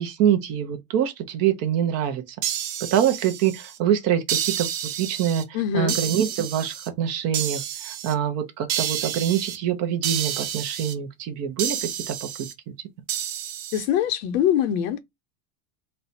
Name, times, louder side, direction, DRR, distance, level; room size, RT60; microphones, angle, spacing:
voice 1, 0.0-2.4 2.9-5.4 5.7-12.3, right 9 dB, 35° right, 0.7 m, -25 dB
sound 1, 2.4-3.8 4.3-5.4 5.9-6.9 7.3-8.1 8.7-9.6 10.0-10.9 11.6-12.5 13.1-13.9, right 10 dB, 60° right, 1.1 m, -30 dB
voice 2, 5.5-6.0 13.7-15.0, left 10 dB, 60° left, 0.8 m, -23 dB
4.2 x 2.2 x 4.0 m
supercardioid pair, 155°, 46 cm